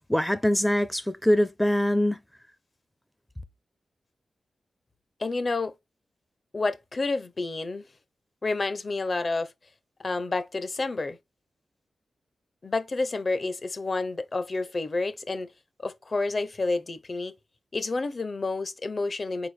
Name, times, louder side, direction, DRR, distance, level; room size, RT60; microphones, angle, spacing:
voice 1, 0.0-2.2, equal, 5° left, 0.6 m, -23 dB
voice 2, 5.2-5.7 6.5-7.8 8.4-9.5 10.0-11.2 12.6-15.5 15.8-17.3 17.7-19.5, left 3 dB, 35° left, 0.8 m, -29 dB
5.0 x 4.4 x 4.4 m
wide cardioid pair, 140°, 0 cm